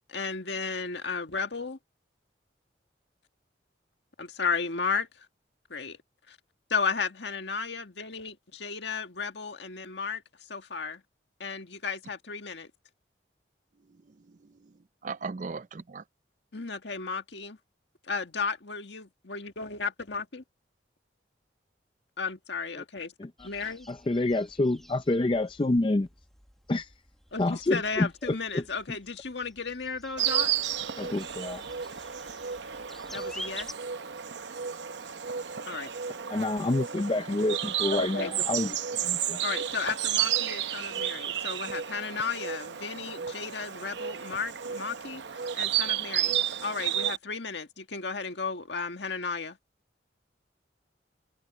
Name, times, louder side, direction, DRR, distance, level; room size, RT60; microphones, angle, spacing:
voice 1, 0.1-1.8 4.2-5.3 5.7-6.0 6.3-6.4 6.7-10.2 10.5-11.0 11.4-12.7 16.5-17.6 18.1-20.4 22.2-23.1 23.4-23.9 27.3-30.5 33.1-33.7 35.7-35.9 38.0-38.4 39.4-49.6, left 5 dB, 70° left, 1.8 m, -34 dB
voice 2, 13.9-16.0, right 4 dB, 40° right, 0.4 m, -40 dB
sound 1, 23.4-33.7, equal, ahead, 1.3 m, -49 dB
voice 3, 23.9-26.1 26.7-26.9 27.4-28.6 31.0-31.6 36.3-38.8 39.0-39.4, left 2 dB, 25° left, 0.4 m, -28 dB
Insect, 30.2-47.2, right 10 dB, 75° right, 0.7 m, -32 dB
head